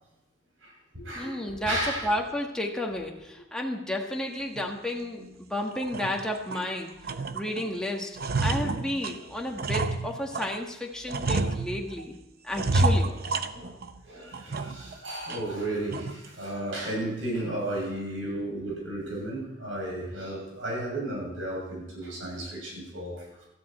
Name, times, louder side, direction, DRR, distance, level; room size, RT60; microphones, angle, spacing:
voice 1, 0.6-2.1 6.5-6.6 13.5-13.7 14.0-23.4, right 1 dB, 80° right, -2 dB, 7.1 m, -34 dB
voice 2, 1.1-6.9 7.3-12.2 12.4-13.2, left 1 dB, 5° left, 0 dB, 1.6 m, -32 dB
sound 1, 4.6-4.7 5.2-5.3 5.7-6.7 7.0-7.7 7.9-10.6 11.1-12.0 12.5-14.0 14.3-14.9 15.3-15.4 15.9-16.3, right 2 dB, 50° right, 0.7 m, -29 dB
17.0 x 13.5 x 4.4 m, 0.93 s
head